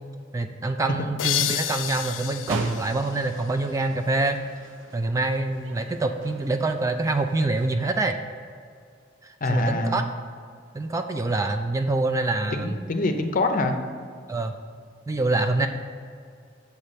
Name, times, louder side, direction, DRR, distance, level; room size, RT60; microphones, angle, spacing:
voice 1, 0.3-4.4 4.9-8.2 9.2-10.0 10.7-12.8 14.3-14.6 15.1-15.7, right 2 dB, 15° right, 7 dB, 0.3 m, -25 dB
sound 1, 1.2-3.9, left 13 dB, 80° left, 0.3 m, -30 dB
sound 2, 2.5-7.9, right 3 dB, 85° right, 0.5 m, -40 dB
voice 2, 9.4-10.0 12.5-13.8 15.6-15.7, left 2 dB, 45° left, 6 dB, 0.7 m, -25 dB
7.0 x 4.3 x 6.6 m, 2.2 s
head